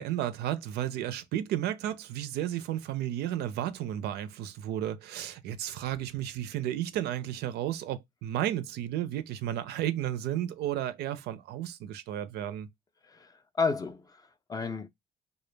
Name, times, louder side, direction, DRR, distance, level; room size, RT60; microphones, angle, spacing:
voice 1, 0.0-12.7, right 12 dB, 75° right, 0.4 m, -33 dB
voice 2, 13.0-14.9, left 4 dB, 20° left, 0.4 m, -32 dB
2.0 x 2.0 x 3.2 m
cardioid pair, 110°, 17 cm